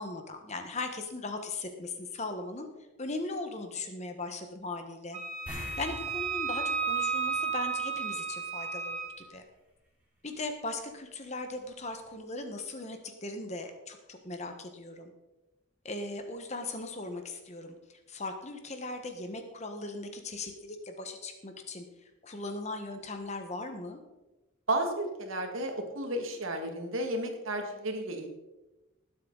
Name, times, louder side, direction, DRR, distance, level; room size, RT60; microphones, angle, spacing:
voice 1, 0.0-2.7 3.0-5.2 5.8-9.4 10.2-15.1 15.8-17.7 18.1-21.8 22.2-24.0, left 2 dB, 30° left, 6 dB, 1.3 m, -38 dB
Wind instrument woodwind instrument, 5.1-9.2, right 5 dB, 30° right, 3.3 m, -33 dB
sound 1, 5.5-8.2 8.5-8.7 11.6-11.7 12.0-12.1, equal, 5° right, 3.2 m, -45 dB
voice 2, 24.7-28.3, right 1 dB, 75° right, 4 dB, 2.0 m, -33 dB
18.5 x 8.0 x 4.0 m, 1.0 s
head